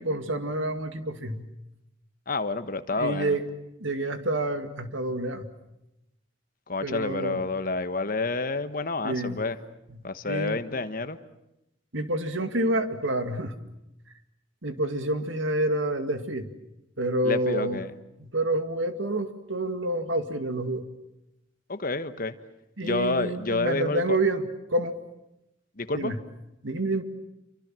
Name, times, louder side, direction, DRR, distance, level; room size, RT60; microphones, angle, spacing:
voice 1, 0.0-1.5 2.9-3.4 3.8-5.5 6.8-7.4 9.0-9.4 9.9-10.6 11.9-13.6 14.6-16.5 17.0-17.8 18.2-20.9 22.8-24.9 25.9-26.2 26.6-27.0, right 1 dB, 85° right, 8 dB, 2.3 m, -28 dB
voice 2, 2.3-3.4 6.7-9.6 10.0-11.2 17.2-17.9 21.7-22.3 22.8-24.2 25.8-26.1, left 3 dB, 45° left, 10 dB, 1.3 m, -29 dB
28.5 x 24.5 x 7.7 m, 0.87 s
head